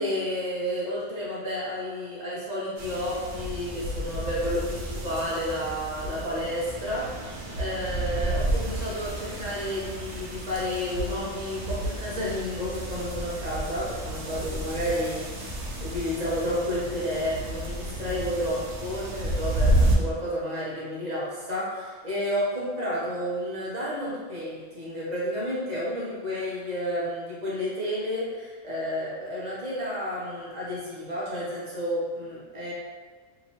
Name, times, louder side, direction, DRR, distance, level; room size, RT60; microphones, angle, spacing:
voice 1, 0.0-15.5 15.8-32.7, equal, 40° right, -7 dB, 0.9 m, -31 dB
sound 1, 2.8-20.0, right 1 dB, 80° right, 0.9 m, -31 dB
2.9 x 2.7 x 2.9 m, 1.4 s
omnidirectional pair, 1.2 m